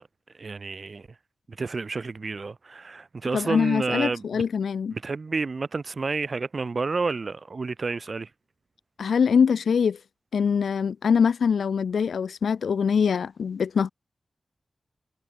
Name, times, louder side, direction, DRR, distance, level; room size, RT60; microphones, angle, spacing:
voice 1, 0.4-1.1 1.5-4.4 4.9-8.3, right 4 dB, 60° right, 1.4 m, -30 dB
voice 2, 3.3-4.9 9.0-10.0 10.3-13.9, left 6 dB, 90° left, 1.0 m, -23 dB
cardioid pair, 40°, 0 cm